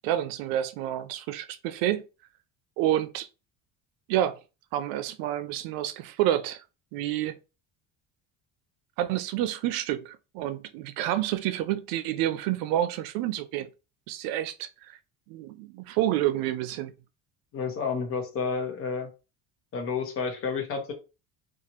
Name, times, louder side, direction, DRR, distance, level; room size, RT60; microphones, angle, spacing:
voice 1, 0.0-2.0 2.8-3.3 4.1-4.4 4.7-6.6 6.9-7.3 9.0-13.7 14.1-15.0 15.3-16.9, right 12 dB, 80° right, 0.5 m, -29 dB
voice 2, 17.5-19.1 19.7-20.9, left 5 dB, 40° left, 0.8 m, -30 dB
2.9 x 2.4 x 2.8 m
cardioid pair, 140°, 35 cm